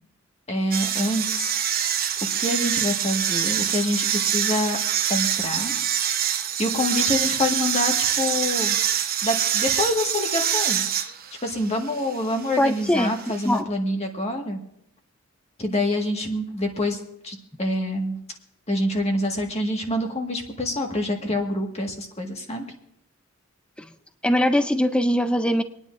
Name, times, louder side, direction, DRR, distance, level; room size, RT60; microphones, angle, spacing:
voice 1, 0.5-1.6 2.4-4.8 5.1-5.7 6.6-8.8 9.2-10.8 11.4-14.6 15.6-18.2 18.7-22.6, left 1 dB, 30° left, 2 dB, 1.7 m, -26 dB
sound 1, 0.7-13.6, right 9 dB, 45° right, 0.8 m, -25 dB
voice 2, 12.6-13.1 13.4-13.6 24.2-25.6, equal, 5° left, 9 dB, 0.5 m, -21 dB
26.0 x 9.9 x 2.6 m, 0.76 s
head